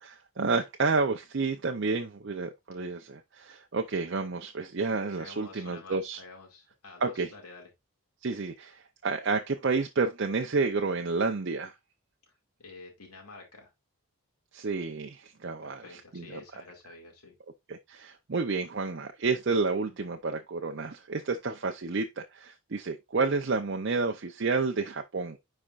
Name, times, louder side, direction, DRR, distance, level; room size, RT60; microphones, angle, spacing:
voice 1, 0.0-6.2 7.0-7.3 8.2-11.7 14.5-16.4 17.7-25.4, right 4 dB, 55° right, 0.6 m, -30 dB
voice 2, 5.2-7.7 12.6-13.7 15.6-17.3, left 3 dB, 90° left, 2.4 m, -48 dB
9.8 x 4.4 x 2.4 m
head